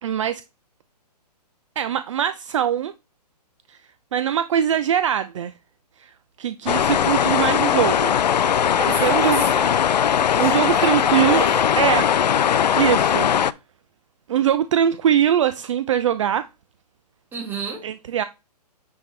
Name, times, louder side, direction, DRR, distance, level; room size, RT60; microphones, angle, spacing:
voice 1, 0.0-0.4 1.8-2.9 3.7-3.8 4.1-5.5 6.0-8.2 9.0-9.5 10.4-11.5 11.8-12.1 12.8-13.3 14.3-16.5 17.8-18.2, right 10 dB, 45° right, 0.5 m, -22 dB
sound 1, 6.7-13.5, left 9 dB, 80° left, 0.5 m, -19 dB
voice 2, 8.7-9.8 10.2-11.8 17.3-17.8, right 4 dB, 10° right, 1.7 m, -32 dB
9.6 x 3.6 x 3.2 m
hypercardioid pair, 145°, 21 cm